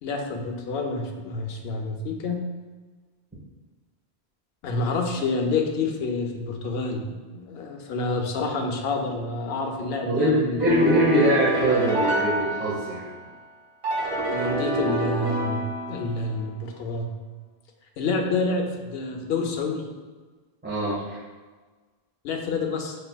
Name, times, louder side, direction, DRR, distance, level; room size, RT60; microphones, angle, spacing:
voice 1, 0.0-2.4 4.6-7.0 7.3-10.6 14.3-15.6 15.9-17.1 18.0-19.8 22.2-23.0, left 3 dB, 75° left, 2 dB, 0.8 m, -28 dB
voice 2, 10.0-13.1 20.6-21.2, equal, 10° right, -10 dB, 0.8 m, -22 dB
sound 1, 10.6-13.2 13.8-16.3, right 1 dB, 65° right, 1.5 m, -27 dB
5.8 x 2.7 x 2.2 m, 1.4 s
omnidirectional pair, 1.1 m